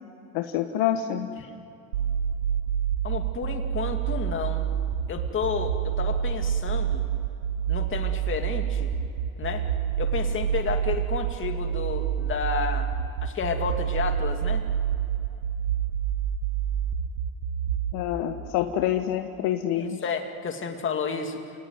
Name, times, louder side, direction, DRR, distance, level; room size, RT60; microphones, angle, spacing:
voice 1, 0.3-1.3 17.9-20.0, left 11 dB, 60° left, 6 dB, 1.4 m, -27 dB
sound 1, 1.9-17.9, right 9 dB, 85° right, 1.7 m, -27 dB
voice 2, 3.0-4.7 5.1-7.1 7.7-8.9 9.4-9.7 10.0-12.9 13.2-14.6 19.7-21.4, left 6 dB, 30° left, 4 dB, 2.6 m, -31 dB
30.0 x 18.0 x 9.5 m, 2.9 s
supercardioid pair, 120°, 43 cm